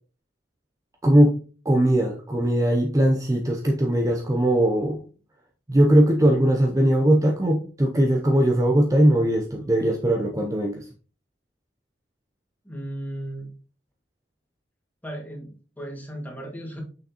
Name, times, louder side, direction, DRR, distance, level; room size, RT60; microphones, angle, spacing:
voice 1, 1.0-1.4 1.7-5.0 5.7-10.8, right 1 dB, 20° right, 2 dB, 0.5 m, -20 dB
voice 2, 12.6-13.6 15.0-16.8, right 1 dB, 10° left, 0 dB, 1.7 m, -36 dB
6.2 x 5.8 x 2.8 m, 0.37 s
head